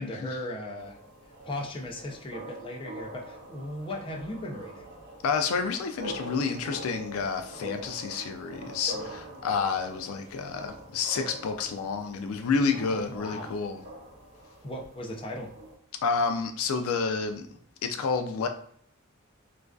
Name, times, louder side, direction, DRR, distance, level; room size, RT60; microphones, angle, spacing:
voice 1, 0.0-4.9 12.9-13.6 14.6-15.5, left 1 dB, 25° left, 0.4 m, -37 dB
sound 1, 0.8-15.8, right 1 dB, 50° right, 0.6 m, -44 dB
voice 2, 5.2-13.8 16.0-17.5 17.8-18.5, left 5 dB, 85° left, 0.3 m, -29 dB
2.4 x 2.2 x 2.3 m
head